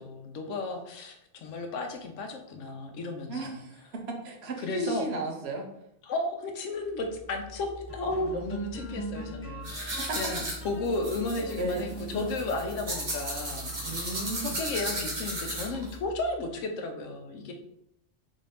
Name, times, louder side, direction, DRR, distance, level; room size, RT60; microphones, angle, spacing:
voice 1, 0.0-3.6 4.6-5.1 6.0-17.5, left 2 dB, 85° left, 4 dB, 1.0 m, -34 dB
voice 2, 3.3-3.7 4.2-5.6 10.0-10.2 11.5-11.9 13.8-14.6, right 2 dB, 60° right, 0 dB, 0.9 m, -34 dB
sound 1, 6.9-16.5, equal, 20° left, 0.4 m, -41 dB
sound 2, 9.6-15.9, right 1 dB, 40° right, 1.1 m, -35 dB
3.8 x 2.6 x 3.3 m, 0.79 s
omnidirectional pair, 1.3 m